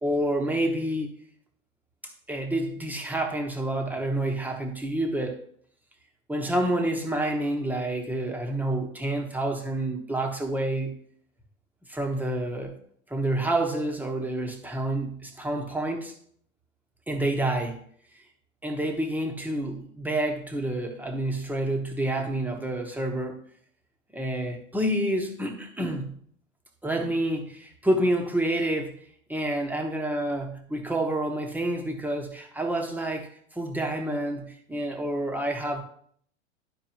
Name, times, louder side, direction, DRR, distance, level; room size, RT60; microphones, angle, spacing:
voice 1, 0.0-1.1 2.0-5.4 6.3-11.0 11.9-12.8 13.1-16.1 17.1-17.8 18.6-23.4 24.1-26.1 26.8-29.0 29.3-35.8, right 1 dB, 5° right, 3 dB, 1.3 m, -28 dB
12.0 x 4.6 x 3.0 m, 0.62 s
hypercardioid pair, 100°, 39 cm